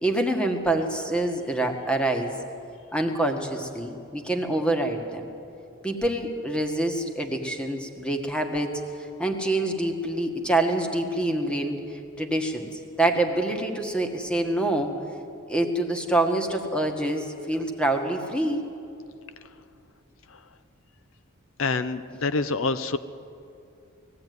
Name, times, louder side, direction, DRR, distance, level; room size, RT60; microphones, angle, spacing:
voice 1, 0.0-2.3 2.9-5.3 5.8-8.8 9.2-11.8 12.2-12.7 13.0-14.9 15.5-18.6, right 1 dB, 5° left, 4 dB, 1.6 m, -26 dB
voice 2, 21.6-23.0, left 3 dB, 65° left, 12 dB, 0.6 m, -26 dB
20.0 x 15.0 x 9.4 m, 2.6 s
head